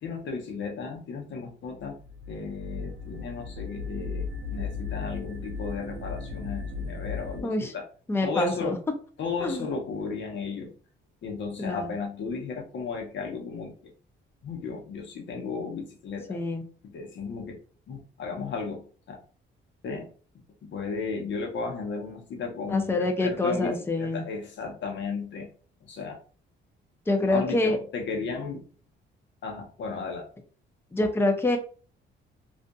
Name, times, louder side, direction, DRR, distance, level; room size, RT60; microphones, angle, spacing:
voice 1, 0.0-2.0 2.3-7.9 8.2-8.8 9.2-10.7 11.2-13.9 14.4-16.4 16.8-17.6 17.9-19.2 19.8-20.1 20.6-25.5 25.8-26.2 27.2-28.7 29.4-30.3, left 4 dB, 65° left, 1 dB, 0.9 m, -34 dB
sound 1, 1.8-7.4, left 4 dB, 75° right, 0.6 m, -36 dB
voice 2, 8.1-8.7 9.4-9.6 11.6-11.9 16.3-16.6 22.7-24.2 27.1-27.8 30.9-31.6, left 2 dB, 10° left, 4 dB, 0.5 m, -26 dB
2.5 x 2.4 x 2.3 m, 0.40 s
cardioid pair, 90°, 20 cm